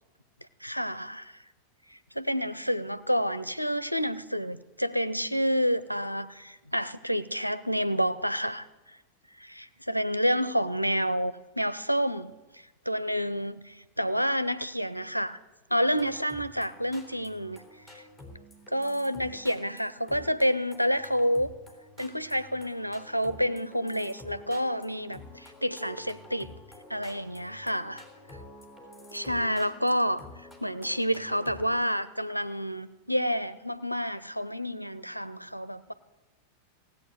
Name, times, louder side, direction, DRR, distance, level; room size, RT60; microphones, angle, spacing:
voice 1, 0.6-1.2 1.9-9.0 9.4-15.4 15.7-17.6 17.9-18.0 18.7-21.5 22.0-26.5 26.9-28.0 29.1-35.9, equal, 90° left, 14 dB, 0.6 m, -29 dB
sound 1, 15.7-31.7, left 2 dB, 5° right, 3.2 m, -49 dB
16.5 x 8.4 x 7.8 m, 1.1 s
figure-of-eight pair, 90°, 0 cm